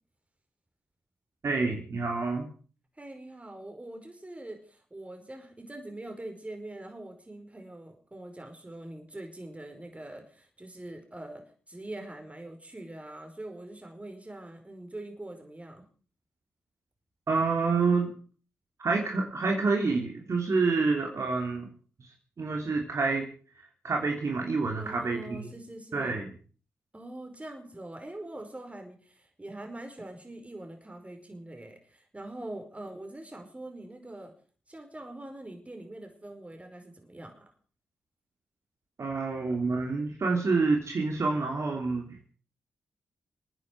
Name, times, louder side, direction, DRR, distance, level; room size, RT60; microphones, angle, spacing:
voice 1, 1.4-2.5 17.3-18.1 18.8-21.7 22.0-22.1 22.4-23.3 23.5-25.5 25.9-26.3 39.0-42.3, right 4 dB, 55° right, 1 dB, 3.2 m, -28 dB
voice 2, 3.0-15.9 24.8-26.2 26.9-34.3 34.7-37.5, right 1 dB, 20° right, 5 dB, 5.0 m, -43 dB
27.5 x 9.8 x 4.8 m, 0.41 s
supercardioid pair, 40°, 6 cm